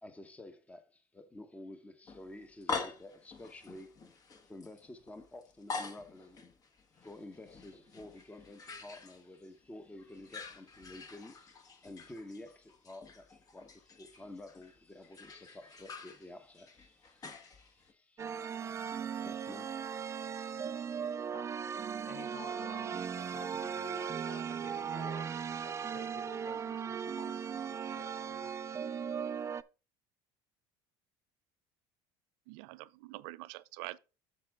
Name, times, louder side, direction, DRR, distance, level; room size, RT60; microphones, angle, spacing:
voice 1, 0.0-6.4 6.9-19.7, left 1 dB, 10° left, 1.1 m, -51 dB
sound 1, 2.1-9.7 9.9-17.9, left 4 dB, 30° left, 1.3 m, -46 dB
sound 2, 18.2-29.6, right 7 dB, 25° right, 0.4 m, -38 dB
voice 2, 21.3-21.6 22.0-25.3 25.6-28.6, left 4 dB, 75° left, 3.2 m, -52 dB
voice 3, 32.5-34.0, right 20 dB, 80° right, 0.5 m, -45 dB
7.5 x 7.1 x 3.6 m
supercardioid pair, 105°, 12 cm